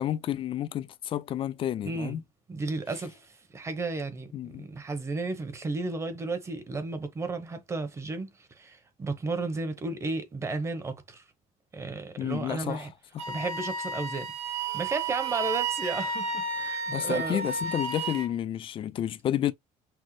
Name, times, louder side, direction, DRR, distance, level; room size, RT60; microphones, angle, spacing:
voice 1, 0.0-2.2 4.3-4.7 12.2-12.9 13.1-13.3 16.9-19.5, left 11 dB, 35° left, 0.4 m, -30 dB
voice 2, 1.8-2.2 2.5-11.2 11.7-12.9 13.3-14.3 14.7-17.4, right 3 dB, 20° right, 0.9 m, -33 dB
Wind instrument woodwind instrument, 13.2-18.3, right 4 dB, 45° right, 1.4 m, -32 dB
6.0 x 2.0 x 3.1 m
cardioid pair, 165°, 15 cm